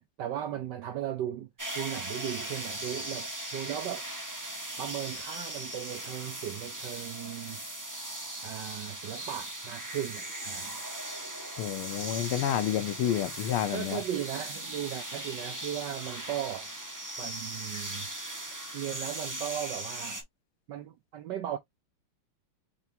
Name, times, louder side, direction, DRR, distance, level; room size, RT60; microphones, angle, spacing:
voice 1, 0.0-1.5 1.8-4.1 4.8-7.6 8.1-10.8 13.7-16.7 17.2-18.1 18.7-20.2 20.7-21.6, right 11 dB, 70° right, 1.1 m, -37 dB
sound 1, 1.6-20.2, right 1 dB, 15° right, 0.7 m, -39 dB
voice 2, 11.6-14.0, left 11 dB, 80° left, 1.6 m, -29 dB
5.7 x 3.4 x 2.7 m
omnidirectional pair, 2.3 m